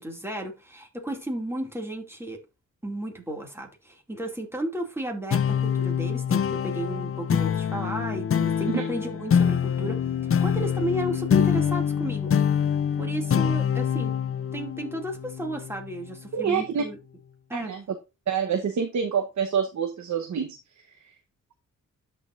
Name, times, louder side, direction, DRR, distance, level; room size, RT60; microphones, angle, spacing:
voice 1, 0.0-2.4 2.8-12.3 13.0-14.1 14.5-17.0 17.5-17.8, right 1 dB, 10° right, 2.3 m, -33 dB
sound 1, 5.3-16.1, left 8 dB, 45° left, 0.6 m, -25 dB
voice 2, 16.3-16.8 17.5-17.8 18.3-20.6, right 7 dB, 65° right, 1.0 m, -26 dB
13.0 x 4.6 x 2.5 m
cardioid pair, 85°, 31 cm